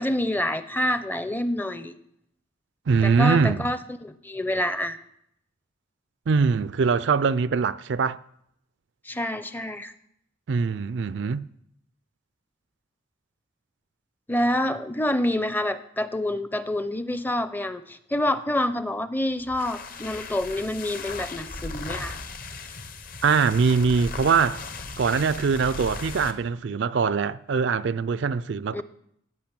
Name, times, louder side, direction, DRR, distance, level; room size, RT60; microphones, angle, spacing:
voice 1, 0.0-2.0 3.0-5.0 9.0-9.9 14.3-22.2 28.7-28.8, left 1 dB, 10° left, 0.5 m, -27 dB
voice 2, 2.9-3.7 6.3-8.2 10.5-11.4 23.2-24.6 25.0-28.8, right 5 dB, 60° right, 0.4 m, -22 dB
sound 1, 19.4-26.4, left 3 dB, 45° left, 1.0 m, -37 dB
14.5 x 6.1 x 8.8 m
head